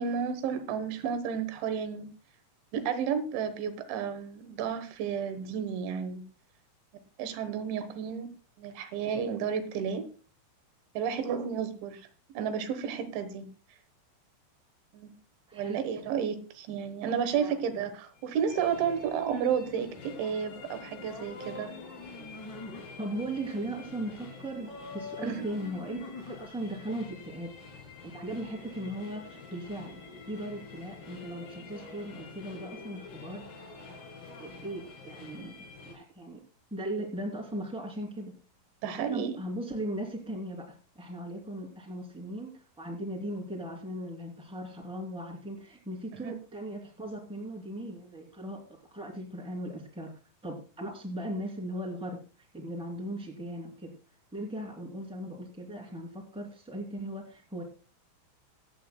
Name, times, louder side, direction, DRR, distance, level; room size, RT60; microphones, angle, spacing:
voice 1, 0.0-2.1 2.7-6.2 7.2-8.3 8.6-10.1 11.0-12.0 12.4-13.5 14.9-15.1 15.5-21.7 25.2-25.4 38.8-39.3 46.2-46.3, right 7 dB, 75° right, 10 dB, 3.5 m, -32 dB
voice 2, 15.5-15.8 17.4-17.5 23.0-27.5 28.0-30.0 30.3-33.7 34.4-35.5 35.8-36.4 36.7-38.3 38.8-52.2 52.5-54.0 54.3-57.6, right 1 dB, ahead, 0 dB, 1.3 m, -38 dB
sound 1, 18.1-35.9, left 4 dB, 90° left, 8.0 m, -47 dB
sound 2, 21.0-22.9 24.7-26.5, left 3 dB, 45° left, 1.3 m, -43 dB
25.0 x 8.6 x 2.2 m, 0.36 s
omnidirectional pair, 5.6 m